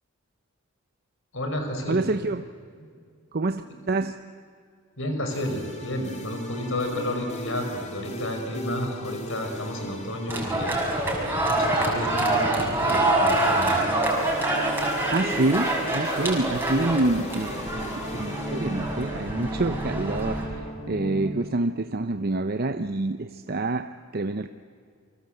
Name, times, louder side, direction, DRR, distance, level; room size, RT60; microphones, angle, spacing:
voice 1, 1.3-2.1 3.6-3.7 5.0-10.9 11.5-13.8, left 1 dB, 65° left, 4 dB, 5.8 m, -31 dB
voice 2, 1.9-2.5 3.3-4.2 15.1-24.5, right 2 dB, 45° right, 9 dB, 0.7 m, -27 dB
sound 1, 5.3-21.3, equal, 35° left, 3.1 m, -37 dB
sound 2, 10.3-20.5, right 1 dB, 10° right, 6.1 m, -26 dB
29.5 x 24.5 x 7.9 m, 2.2 s
head